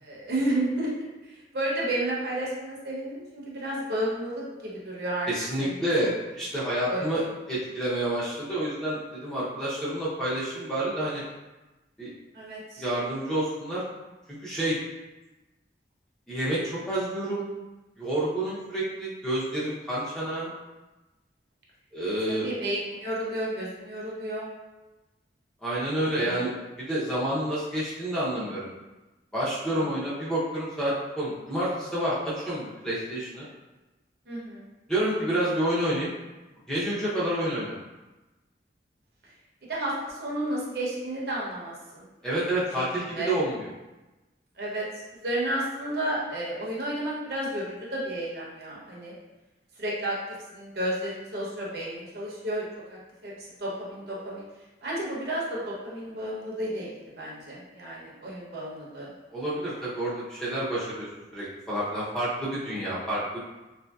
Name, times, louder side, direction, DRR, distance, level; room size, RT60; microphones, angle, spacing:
voice 1, 0.0-5.3 5.6-5.8 6.9-7.3 12.3-12.8 22.3-24.5 26.2-26.4 29.7-29.8 34.3-34.7 39.7-42.1 43.0-43.3 44.6-49.1 49.8-50.2 50.5-53.3 53.6-54.5 54.8-59.1, right 1 dB, 65° right, -5 dB, 0.8 m, -32 dB
voice 2, 5.3-7.2 7.5-11.2 12.0-12.1 12.8-13.8 14.4-14.8 16.3-17.5 18.0-20.5 21.9-22.5 25.6-26.5 26.8-28.7 29.3-33.4 34.9-36.1 36.7-37.8 42.2-43.7 59.3-61.1 61.3-63.4, right 1 dB, 5° left, -9 dB, 0.6 m, -29 dB
3.0 x 2.6 x 2.3 m, 1.1 s
head